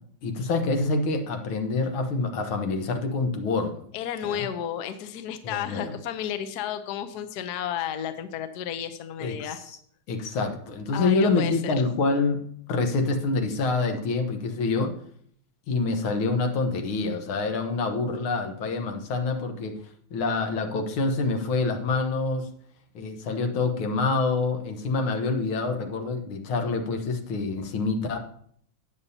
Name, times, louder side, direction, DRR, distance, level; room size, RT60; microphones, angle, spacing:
voice 1, 0.2-3.8 4.2-4.5 5.4-6.0 9.2-9.8 10.1-12.4 12.7-14.9 15.7-19.7 20.1-22.5 23.0-28.2, left 3 dB, 85° left, 5 dB, 2.0 m, -26 dB
voice 2, 3.9-9.6 10.9-11.8, left 10 dB, 65° left, 9 dB, 1.1 m, -32 dB
17.5 x 7.0 x 2.8 m, 0.63 s
omnidirectional pair, 2.2 m